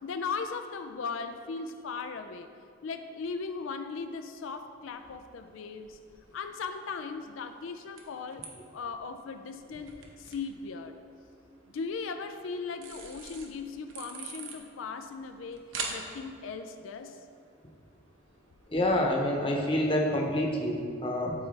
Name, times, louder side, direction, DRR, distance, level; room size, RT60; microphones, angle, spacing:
voice 1, 0.0-2.5 2.8-6.0 6.3-8.5 8.7-11.0 11.7-17.2, left 5 dB, 85° left, 7 dB, 0.4 m, -38 dB
sound 1, 4.9-19.0, right 4 dB, 85° right, 1.0 m, -47 dB
voice 2, 18.7-21.3, left 1 dB, 25° left, 0 dB, 0.9 m, -27 dB
12.5 x 4.6 x 3.3 m, 2.3 s
head